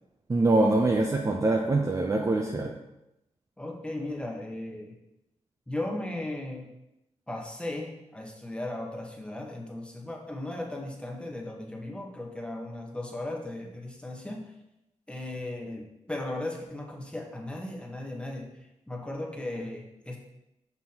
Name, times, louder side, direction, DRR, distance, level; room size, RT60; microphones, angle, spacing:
voice 1, 0.3-2.7, right 2 dB, 30° right, 1 dB, 0.6 m, -24 dB
voice 2, 3.6-5.0 5.7-6.7 7.3-14.5 15.1-20.2, left 1 dB, 10° left, 0 dB, 1.1 m, -36 dB
6.0 x 5.6 x 2.9 m, 0.89 s
cardioid pair, 85°, 12 cm